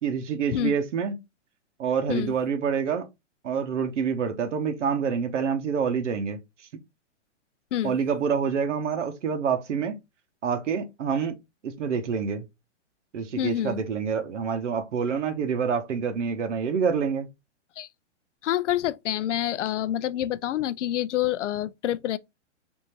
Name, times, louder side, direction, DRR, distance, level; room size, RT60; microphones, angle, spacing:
voice 1, 0.0-1.1 1.8-3.1 3.4-6.4 7.8-10.0 10.4-11.4 11.6-12.4 13.1-17.3, right 6 dB, 85° right, 0.9 m, -27 dB
voice 2, 13.4-13.8 17.8-17.9 18.4-22.2, left 12 dB, 85° left, 0.5 m, -27 dB
3.6 x 2.6 x 4.3 m
hypercardioid pair, 155°, 35 cm